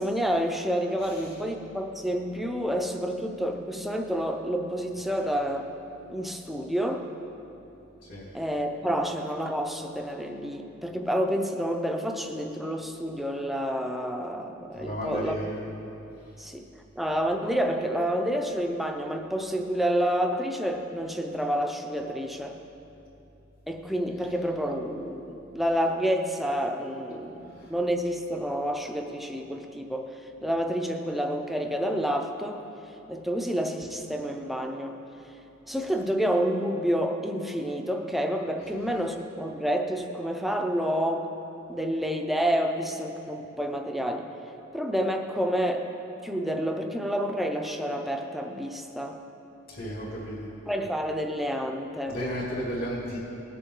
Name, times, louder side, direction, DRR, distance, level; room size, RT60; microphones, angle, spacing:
voice 1, 0.0-5.7 6.1-7.1 8.3-15.5 16.4-22.6 23.7-32.6 33.1-35.0 35.7-41.3 41.7-44.3 44.7-45.9 46.2-49.2 50.7-52.2, equal, ahead, 4 dB, 0.6 m, -29 dB
voice 2, 14.8-15.5 38.6-38.7 49.7-50.5 52.1-53.2, equal, 45° left, -9 dB, 2.2 m, -33 dB
19.0 x 7.0 x 3.8 m, 2.8 s
head